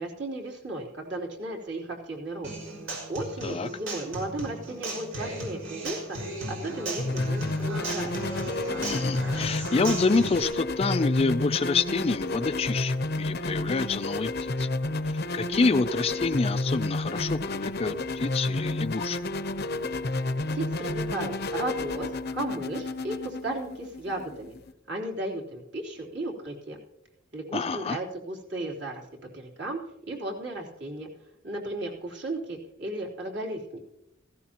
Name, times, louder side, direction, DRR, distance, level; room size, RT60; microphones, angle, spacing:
voice 1, 0.0-2.5 3.1-6.2 6.5-8.2 20.5-24.5 24.9-26.8 27.3-31.1 31.4-33.8, right 2 dB, 60° right, -2 dB, 3.4 m, -35 dB
Human voice / Acoustic guitar, 2.4-10.4, right 1 dB, 80° right, 5.7 m, -36 dB
sound 1, 7.0-24.7, left 2 dB, 50° left, 0.7 m, -31 dB
voice 2, 8.8-14.7 15.0-19.2 27.5-28.0, left 4 dB, 30° left, 11 dB, 0.4 m, -27 dB
17.0 x 16.0 x 2.9 m, 0.83 s
head